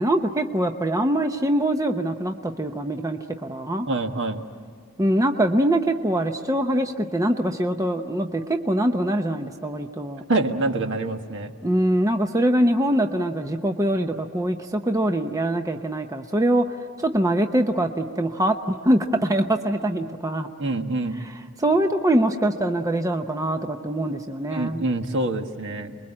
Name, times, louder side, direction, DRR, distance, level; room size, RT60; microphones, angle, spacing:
voice 1, 0.0-3.9 5.0-10.2 11.6-20.5 21.2-21.3 21.6-24.8, right 1 dB, 15° right, 5 dB, 0.8 m, -23 dB
voice 2, 3.9-4.4 10.3-11.5 20.6-21.2 24.5-26.0, right 2 dB, 60° right, 5 dB, 1.6 m, -26 dB
29.0 x 22.0 x 8.7 m, 2.1 s
head